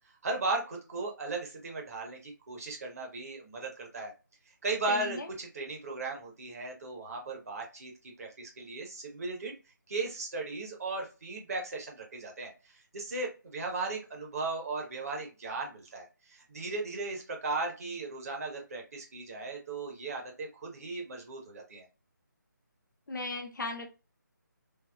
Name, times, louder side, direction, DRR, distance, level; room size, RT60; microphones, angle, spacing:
voice 1, 0.2-4.1 4.6-7.9 8.2-9.5 9.9-21.9, right 3 dB, 50° right, 1 dB, 1.0 m, -36 dB
voice 2, 4.9-5.3 23.1-23.9, left 3 dB, 70° left, 3 dB, 0.8 m, -36 dB
3.4 x 2.1 x 2.2 m, 0.30 s
figure-of-eight pair, 155°, 11 cm